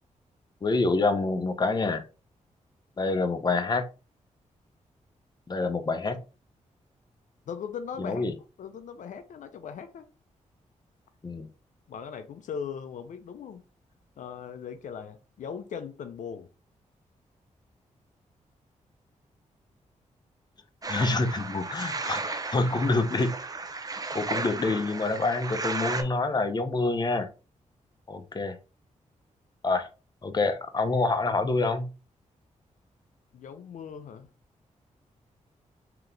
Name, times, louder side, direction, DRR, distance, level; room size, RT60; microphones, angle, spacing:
voice 1, 0.6-2.0 3.0-3.9 5.5-6.2 8.0-8.3 11.2-11.5 20.9-23.3 24.1-27.3 28.1-28.6 29.6-29.9 30.2-31.9, left 3 dB, 30° left, 0.7 m, -27 dB
voice 2, 7.5-8.2 8.6-10.1 11.9-13.6 14.2-16.5 33.3-34.3, left 7 dB, 75° left, 0.5 m, -39 dB
sound 1, 20.8-26.0, right 3 dB, 30° right, 0.6 m, -34 dB
3.7 x 2.9 x 3.3 m
cardioid pair, 75°, 13 cm